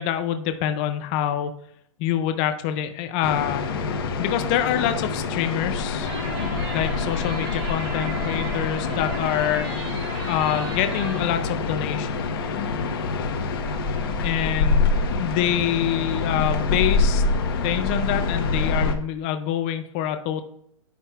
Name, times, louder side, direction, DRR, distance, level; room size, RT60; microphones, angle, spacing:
voice 1, 0.0-1.5 2.0-3.7 4.2-6.1 6.7-12.1 14.2-17.2 17.6-20.4, left 10 dB, 15° left, 8 dB, 0.3 m, -26 dB
sound 1, 3.2-18.9, left 4 dB, 45° left, 1.1 m, -26 dB
sound 2, 6.1-11.4, right 3 dB, 55° right, 2.2 m, -36 dB
9.8 x 7.3 x 2.4 m, 0.71 s
hypercardioid pair, 170°, 17 cm